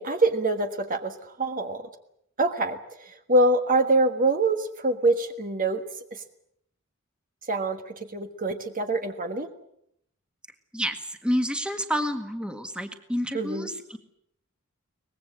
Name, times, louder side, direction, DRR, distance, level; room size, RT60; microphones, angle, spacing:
voice 1, 0.0-1.9 2.4-5.8 6.1-6.2 7.5-9.5 13.3-13.7, right 2 dB, 40° right, 6 dB, 1.5 m, -25 dB
voice 2, 10.7-14.0, equal, 5° right, 6 dB, 1.7 m, -29 dB
23.5 x 20.0 x 7.9 m, 0.74 s
head